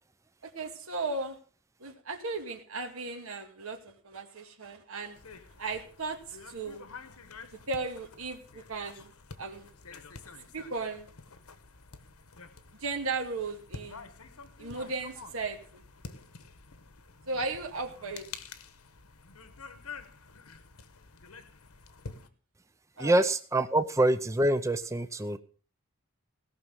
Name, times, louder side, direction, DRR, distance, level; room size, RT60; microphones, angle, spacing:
voice 1, 0.5-1.4 1.8-5.2 5.6-6.8 7.7-9.1 9.4-9.7 10.5-11.1 12.8-14.1 14.6-15.8 17.3-18.3 23.0-23.3, right 3 dB, 75° right, 3 dB, 2.2 m, -36 dB
sound 1, 5.1-22.3, left 4 dB, 85° left, 1.3 m, -49 dB
voice 2, 23.0-25.4, right 1 dB, 15° right, 11 dB, 0.6 m, -25 dB
17.5 x 6.2 x 7.5 m, 0.42 s
head